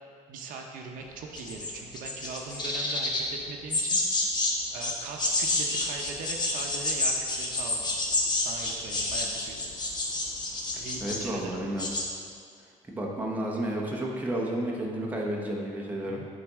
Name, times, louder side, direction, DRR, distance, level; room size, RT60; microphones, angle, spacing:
voice 1, 0.3-4.0 4.7-8.0 8.4-9.7 10.8-11.6 15.9-16.3, right 4 dB, 70° right, 2 dB, 0.7 m, -40 dB
sound 1, 1.3-3.2 3.7-4.5 4.8-11.3 11.6-12.0, left 2 dB, 30° left, 0.9 m, -29 dB
voice 2, 10.7-11.9 12.9-16.2, right 1 dB, 10° right, -2 dB, 0.8 m, -32 dB
8.5 x 4.0 x 3.6 m, 2.2 s
cardioid pair, 135°, 14 cm